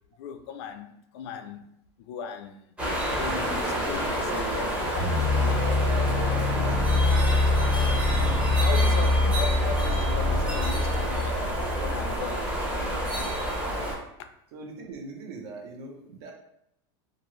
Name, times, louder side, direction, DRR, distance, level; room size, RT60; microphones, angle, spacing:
voice 1, 0.2-1.6 2.0-2.7 3.1-6.6 7.2-12.5, left 6 dB, 70° left, 8 dB, 0.4 m, -38 dB
sound 1, 2.8-13.9, right 1 dB, 10° right, 0.6 m, -29 dB
voice 2, 3.2-4.6 5.4-7.7 14.5-16.3, right 3 dB, 70° right, 2 dB, 0.7 m, -40 dB
sound 2, 4.9-12.1, left 2 dB, 25° right, 1.0 m, -25 dB
2.6 x 2.4 x 3.0 m, 0.77 s
supercardioid pair, 155°, 14 cm